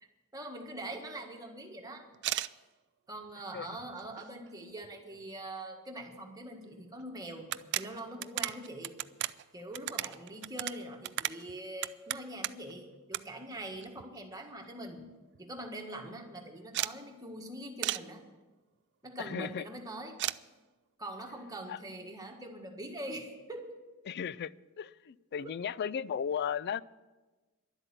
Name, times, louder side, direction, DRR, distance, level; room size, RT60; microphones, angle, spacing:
voice 1, 0.3-2.0 3.1-8.9 9.5-15.0 15.4-18.2 19.0-20.2 21.0-23.7 25.4-25.5, right 1 dB, 15° right, 1.6 m, -43 dB
sound 1, 2.1-2.5 3.2-3.3 3.8-4.5 4.8-4.9 5.2-5.3 6.6-6.7 7.0-7.1 7.4-12.7 13.1-13.2 13.5-14.3 14.6-14.7 15.0-15.1 15.3-15.7 16.7-17.0 17.8-18.1 20.2-20.4, right 14 dB, 50° right, 0.3 m, -36 dB
voice 2, 19.2-19.6 21.7-21.8 24.1-24.5 24.8-26.8, left 7 dB, 50° left, 0.3 m, -35 dB
11.5 x 8.0 x 9.2 m
head